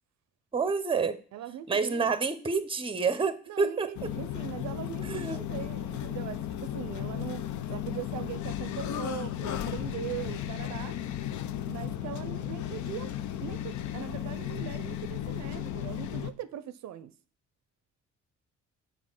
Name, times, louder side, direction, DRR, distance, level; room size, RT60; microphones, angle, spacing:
voice 1, 0.5-1.2 1.7-4.1 5.0-5.4, right 5 dB, 15° right, 0.7 m, -28 dB
voice 2, 1.3-2.1 3.5-11.0 11.7-13.1 13.4-17.1, right 11 dB, 65° right, 0.5 m, -40 dB
sound 1, 3.9-16.3, left 11 dB, 70° left, 0.6 m, -35 dB
6.3 x 4.0 x 6.3 m
cardioid pair, 90°, 30 cm